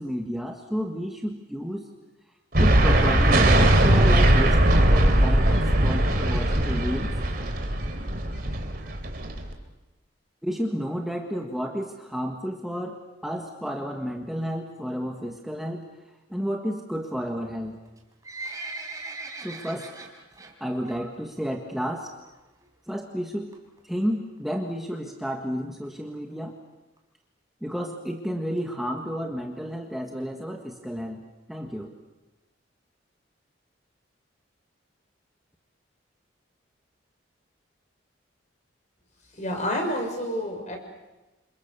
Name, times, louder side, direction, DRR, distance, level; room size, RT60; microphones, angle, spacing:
voice 1, 0.0-1.9 2.6-7.1 10.4-15.8 16.3-17.8 19.4-19.9 20.6-22.1 22.9-23.5 23.8-26.5 27.6-31.9, equal, ahead, 1 dB, 1.6 m, -31 dB
sound 1, 2.5-9.5, right 1 dB, 50° right, 3.3 m, -20 dB
Livestock farm animals working animals, 17.9-20.5 20.9-21.2 21.5-21.6 22.2-22.3 22.6-22.7 22.9-23.0 23.5-23.8 24.4-24.5 24.7-24.8 25.0-25.1 25.3-25.4 25.8-25.9 26.4-26.5 27.0-27.1, right 2 dB, 15° right, 4.1 m, -38 dB
voice 2, 39.4-40.8, equal, 35° left, 3 dB, 6.5 m, -28 dB
30.0 x 27.5 x 6.9 m, 1.1 s
head